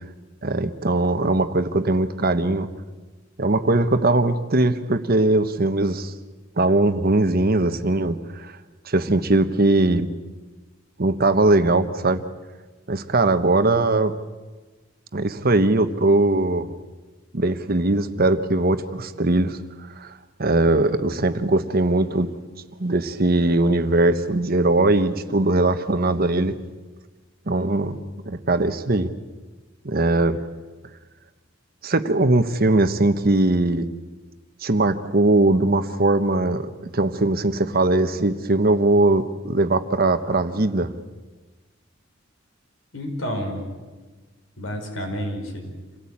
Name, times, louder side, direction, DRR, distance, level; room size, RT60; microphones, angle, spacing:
voice 1, 0.4-2.7 3.4-6.1 6.6-8.5 8.8-10.1 11.0-12.2 12.9-14.1 15.1-16.7 17.3-19.6 19.9-20.1 20.4-22.3 22.8-26.6 27.5-28.0 28.3-29.1 29.8-30.4 31.8-33.9 34.6-40.9, right 2 dB, 50° right, 10 dB, 1.1 m, -20 dB
voice 2, 42.9-43.8 44.6-45.7, equal, 85° left, 2 dB, 5.4 m, -30 dB
27.5 x 17.5 x 8.7 m, 1.3 s
head